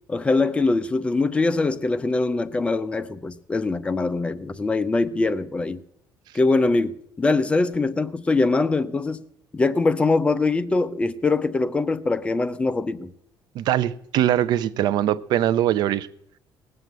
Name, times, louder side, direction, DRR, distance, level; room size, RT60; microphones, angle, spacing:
voice 1, 0.1-5.8 6.3-9.2 9.5-13.1, left 3 dB, 15° left, 0.5 m, -23 dB
voice 2, 13.5-16.1, right 11 dB, 60° right, 0.6 m, -22 dB
18.5 x 7.6 x 8.0 m
cardioid pair, 175°, 8 cm